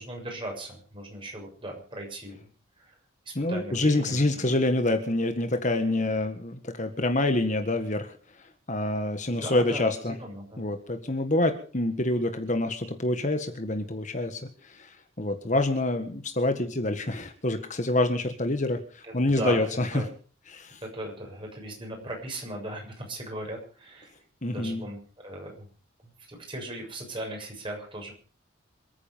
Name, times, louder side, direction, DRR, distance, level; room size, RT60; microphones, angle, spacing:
voice 1, 0.0-2.4 2.8-2.9 3.3-4.6 9.3-10.6 19.0-20.1 20.8-24.1 24.5-25.7 26.0-28.2, right 1 dB, 25° right, 1 dB, 7.1 m, -38 dB
voice 2, 3.3-8.1 8.7-10.2 10.6-20.0 20.5-20.8 24.4-24.8, left 2 dB, 35° left, 7 dB, 1.7 m, -27 dB
27.5 x 9.9 x 5.2 m, 0.41 s
head